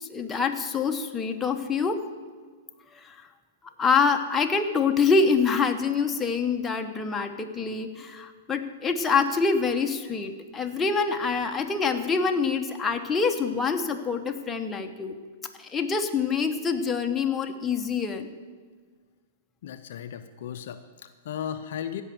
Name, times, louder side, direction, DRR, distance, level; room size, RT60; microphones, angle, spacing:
voice 1, 0.0-2.0 2.9-3.3 3.8-15.1 15.6-18.3, left 5 dB, 15° left, 4 dB, 1.0 m, -26 dB
voice 2, 19.6-22.0, left 9 dB, 60° left, 9 dB, 0.6 m, -36 dB
16.0 x 5.4 x 7.7 m, 1.5 s
hypercardioid pair, 105°, 0 cm